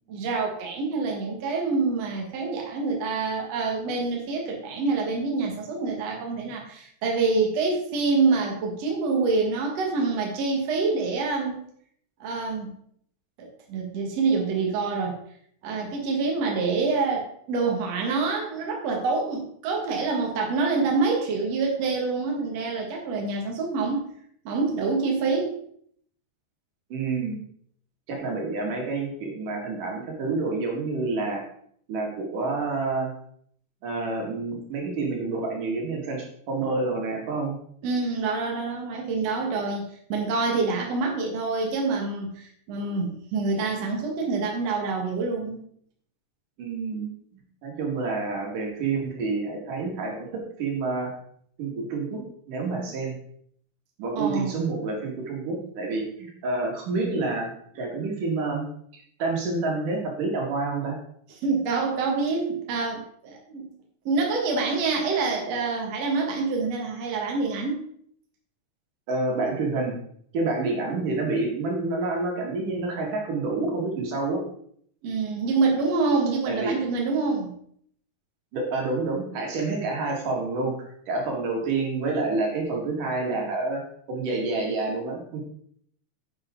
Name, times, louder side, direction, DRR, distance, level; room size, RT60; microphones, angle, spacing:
voice 1, 0.1-11.6 12.2-12.7 13.4-15.2 15.6-24.1 24.5-25.5 37.8-45.6 54.2-54.7 61.4-63.7 64.1-67.8 75.0-77.5, right 4 dB, 55° right, 0 dB, 2.6 m, -26 dB
voice 2, 26.9-27.4 28.1-31.4 31.9-33.1 33.8-37.6 46.6-47.1 47.6-51.1 51.6-52.2 52.5-53.1 54.0-58.6 59.2-61.0 69.1-70.0 70.3-74.4 76.5-76.8 78.5-80.8 81.1-83.8 84.1-85.4, right 3 dB, 80° right, 0 dB, 3.7 m, -28 dB
10.0 x 8.2 x 3.8 m, 0.64 s
omnidirectional pair, 3.7 m